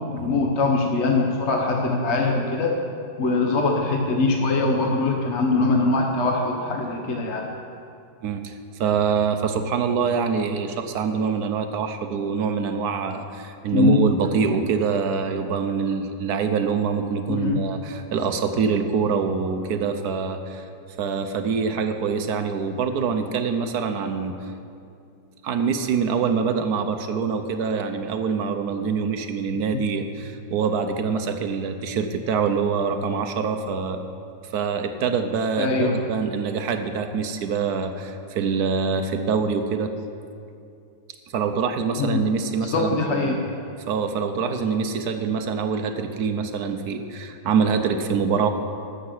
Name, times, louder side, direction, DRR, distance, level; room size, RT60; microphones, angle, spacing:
voice 1, 0.0-2.8 3.2-7.5 13.7-14.0 17.3-17.6 35.6-35.9 42.0-42.2 42.6-43.4, left 3 dB, 45° left, 1 dB, 1.0 m, -22 dB
voice 2, 8.2-20.7 21.0-24.5 25.4-34.0 34.4-39.9 41.3-43.4 43.9-48.5, right 6 dB, 65° right, 7 dB, 1.1 m, -25 dB
12.5 x 6.5 x 7.8 m, 2.5 s
omnidirectional pair, 2.0 m